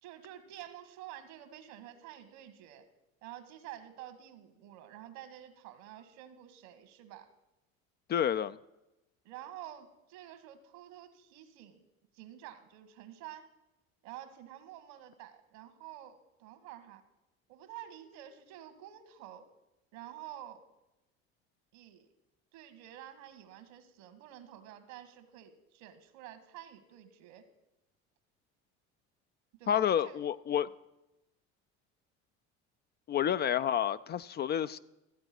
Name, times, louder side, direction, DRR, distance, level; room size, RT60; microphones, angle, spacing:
voice 1, 0.0-2.8 3.2-7.3 9.2-11.8 12.1-13.5 14.0-17.0 17.5-19.5 19.9-20.6 21.7-22.1 22.5-27.4 29.6-30.2, right 12 dB, 75° right, 1.5 m, -49 dB
voice 2, 8.1-8.6 29.7-30.7 33.1-34.8, left 9 dB, 35° left, 0.4 m, -29 dB
14.0 x 7.9 x 6.0 m
supercardioid pair, 85°, 31 cm